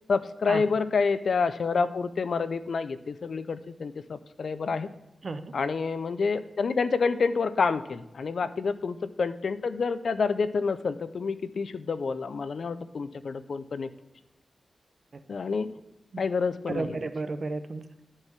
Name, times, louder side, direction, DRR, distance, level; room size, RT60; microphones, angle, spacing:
voice 1, 0.1-4.9 5.5-13.9 15.3-15.7 16.2-17.0, left 5 dB, 60° left, 13 dB, 0.4 m, -28 dB
voice 2, 5.2-5.5 15.1-15.2 16.7-18.0, right 3 dB, 45° right, 10 dB, 0.5 m, -33 dB
9.7 x 4.6 x 6.0 m, 0.90 s
wide cardioid pair, 145°, 0 cm